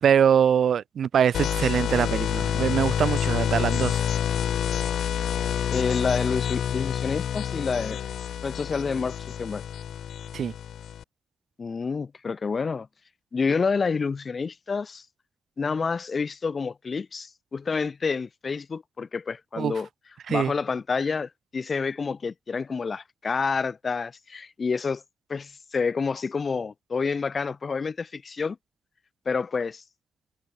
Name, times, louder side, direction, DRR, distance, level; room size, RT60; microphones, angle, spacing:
voice 1, 0.0-4.0 10.3-10.5 19.6-19.7 20.3-20.5, right 8 dB, 70° right, 2.7 m, -23 dB
sound 1, 1.3-11.0, left 9 dB, 85° left, 4.7 m, -28 dB
voice 2, 5.7-8.0 8.4-9.6 11.6-12.9 13.3-15.0 15.6-19.9 20.3-25.0 25.3-28.6 29.3-29.8, left 5 dB, 35° left, 4.3 m, -28 dB
wide cardioid pair, 155°, 0 cm